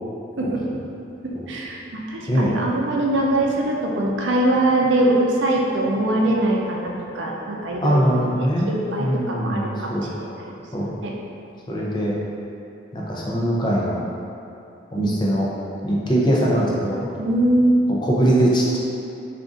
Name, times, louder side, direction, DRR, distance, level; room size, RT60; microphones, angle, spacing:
voice 1, 1.2-8.0 8.7-9.9 10.2-10.5 11.0-11.1 15.0-15.2 17.1-17.9, right 1 dB, 85° right, -2 dB, 0.5 m, -22 dB
voice 2, 7.8-8.7 9.0-10.1 10.7-10.9 11.7-12.1 12.9-14.0 14.9-15.5 15.8-17.1 18.0-18.8, equal, 25° left, -5 dB, 0.5 m, -21 dB
3.6 x 2.5 x 3.8 m, 2.7 s
head